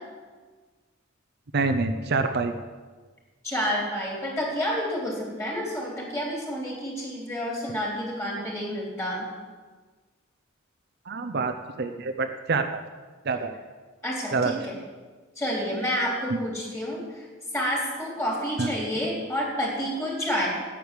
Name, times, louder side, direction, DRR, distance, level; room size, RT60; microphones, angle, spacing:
voice 1, 1.5-2.5 11.1-12.8 13.2-13.5 14.3-14.5 16.3-16.4 18.6-18.7, right 4 dB, 55° right, 6 dB, 0.7 m, -26 dB
voice 2, 3.4-9.3 14.0-14.7 15.4-17.3 17.5-20.5, equal, 15° left, -2 dB, 3.5 m, -29 dB
9.3 x 8.9 x 8.2 m, 1.4 s
head